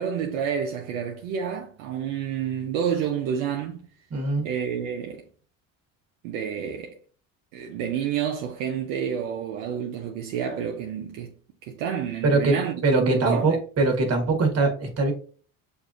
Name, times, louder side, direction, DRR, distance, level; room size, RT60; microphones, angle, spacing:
voice 1, 0.0-3.9 4.4-5.2 6.2-7.0 7.5-11.3 11.6-13.6, right 8 dB, 85° right, 0.6 m, -29 dB
voice 2, 4.1-4.5 12.2-12.6 12.8-15.1, right 3 dB, 40° right, 1.4 m, -22 dB
6.4 x 2.6 x 2.4 m
supercardioid pair, 70°, 39 cm